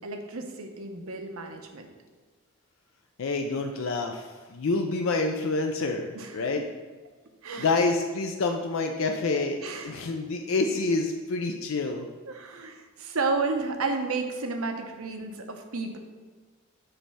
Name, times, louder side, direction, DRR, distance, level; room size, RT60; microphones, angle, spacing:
voice 1, 0.0-1.9 6.1-6.7 7.4-7.8 9.6-10.0 12.3-16.0, right 3 dB, 75° right, 5 dB, 0.8 m, -32 dB
voice 2, 3.2-4.2 4.5-6.6 7.6-9.6 9.8-12.1, left 3 dB, 65° left, 4 dB, 0.4 m, -27 dB
7.7 x 3.3 x 5.5 m, 1.3 s
head